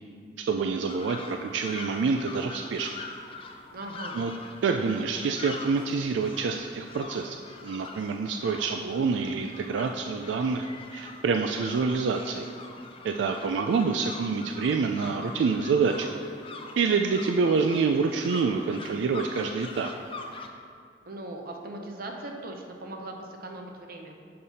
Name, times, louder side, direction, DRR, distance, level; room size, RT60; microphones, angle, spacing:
voice 1, 0.4-2.9 4.1-4.3 4.6-12.5 13.0-16.2 16.8-19.9, right 5 dB, 85° right, 5 dB, 0.3 m, -27 dB
sound 1, 0.9-20.5, left 3 dB, 30° left, 0.5 m, -44 dB
voice 2, 3.7-4.2 21.0-24.2, right 1 dB, 55° right, 3 dB, 0.8 m, -39 dB
6.6 x 5.6 x 4.1 m, 2.3 s
head